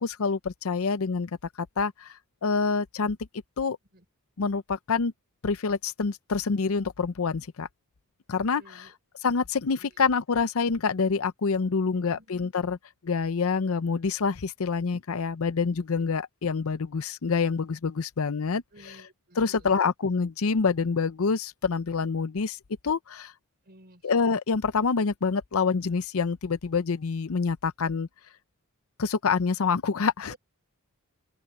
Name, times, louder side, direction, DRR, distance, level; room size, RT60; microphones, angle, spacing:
voice 1, 0.0-1.3 1.6-2.1 2.4-3.2 3.6-3.8 4.4-5.1 5.4-7.7 8.3-8.9 9.2-12.8 13.0-19.1 19.3-22.6 22.8-23.3 24.0-28.1 29.0-30.3, left 5 dB, 70° left, 0.6 m, -27 dB
voice 2, 8.6-8.9 9.8-9.9 11.8-12.3 18.7-19.7 23.7-24.0 30.3-30.4, right 1 dB, 45° right, 4.9 m, -53 dB
open air
head